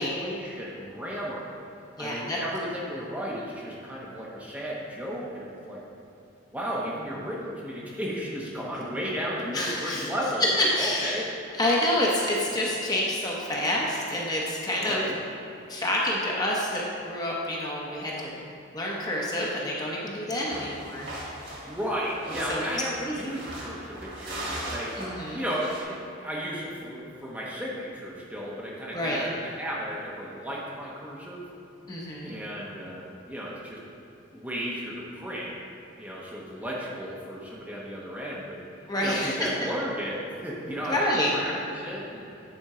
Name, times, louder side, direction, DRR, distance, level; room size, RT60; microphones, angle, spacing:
voice 1, 0.0-1.5 2.0-5.8 6.5-10.5 10.8-11.2 14.8-15.2 21.7-25.0 25.3-31.4 32.2-33.8 34.3-35.5 36.0-38.6 39.0-42.2, equal, 10° right, -5 dB, 0.8 m, -34 dB
voice 2, 2.0-2.4 9.5-10.1 10.4-11.3 11.6-15.0 15.7-18.4 18.7-21.1 22.5-22.7 23.0-23.1 25.0-25.4 28.9-29.3 31.9-32.3 38.9-39.7 40.6-41.3, left 1 dB, 20° left, -4 dB, 0.9 m, -28 dB
sound 1, 20.5-25.8, right 1 dB, 55° right, 1.8 m, -38 dB
9.1 x 4.4 x 4.9 m, 2.8 s
head